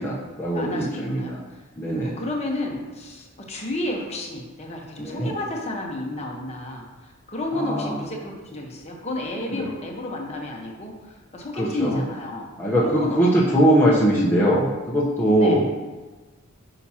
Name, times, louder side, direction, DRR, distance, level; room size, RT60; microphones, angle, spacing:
voice 1, 0.0-1.4 1.8-2.1 5.0-5.3 7.7-8.0 9.5-9.7 11.6-12.0 12.6-15.6, right 1 dB, 10° left, -7 dB, 0.9 m, -21 dB
voice 2, 0.5-1.3 2.0-12.5 12.8-13.6 15.4-15.6, left 1 dB, 30° left, -1 dB, 1.1 m, -31 dB
9.0 x 5.7 x 2.9 m, 1.3 s
head